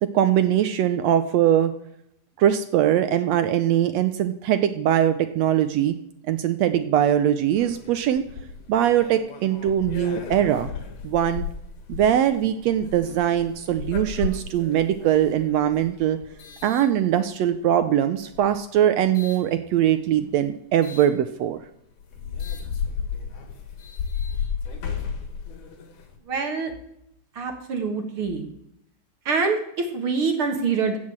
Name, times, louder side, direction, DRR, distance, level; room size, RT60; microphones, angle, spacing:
voice 1, 0.0-1.7 2.4-6.0 6.3-8.2 8.7-10.7 11.0-11.5 11.9-16.2 16.6-21.6, right 10 dB, 75° right, 10 dB, 1.6 m, -21 dB
sound 1, 7.5-17.6 18.2-19.4 20.8-21.1 21.6-21.7 22.0-26.2, left 6 dB, 80° left, 3.1 m, -34 dB
voice 2, 26.3-26.7 27.4-28.5 29.3-31.0, right 4 dB, 50° right, 4 dB, 2.1 m, -25 dB
16.0 x 6.4 x 7.4 m, 0.77 s
omnidirectional pair, 3.5 m